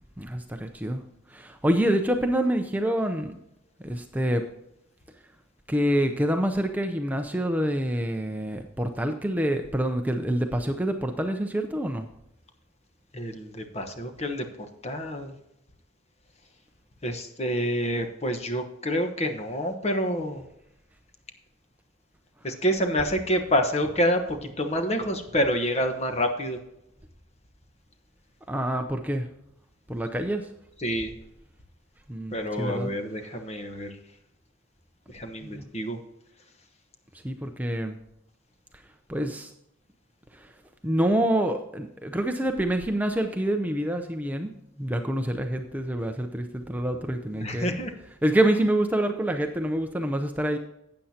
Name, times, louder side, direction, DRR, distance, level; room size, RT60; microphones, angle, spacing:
voice 1, 0.2-1.0 1.3-3.4 3.8-4.4 5.7-12.1 28.5-29.3 29.9-30.5 32.1-32.9 35.4-35.7 37.2-38.0 39.1-39.5 40.3-40.5 40.8-44.5 44.8-47.7 48.2-50.6, right 1 dB, 10° right, 5 dB, 0.6 m, -26 dB
voice 2, 13.1-14.5 14.8-15.3 17.0-20.5 22.4-26.6 30.8-31.1 32.3-33.9 35.1-36.0 47.3-47.9, equal, 30° left, 6 dB, 1.1 m, -27 dB
12.5 x 8.7 x 2.8 m, 0.82 s
head